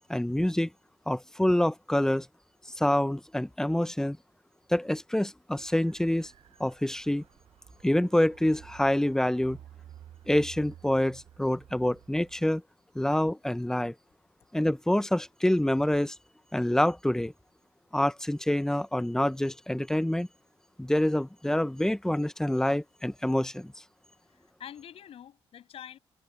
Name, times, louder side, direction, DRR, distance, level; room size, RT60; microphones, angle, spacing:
voice 1, 0.1-0.7 1.1-2.3 2.8-4.2 4.7-6.3 6.6-7.2 7.8-9.6 10.3-12.6 12.9-13.9 14.5-16.1 16.5-17.3 17.9-20.3 20.8-23.7, left 1 dB, 5° left, 0.9 m, -26 dB
sound 1, 5.5-12.4, right 11 dB, 70° right, 4.5 m, -52 dB
voice 2, 24.3-26.0, left 9 dB, 65° left, 7.2 m, -46 dB
supercardioid pair, 65°, 11 cm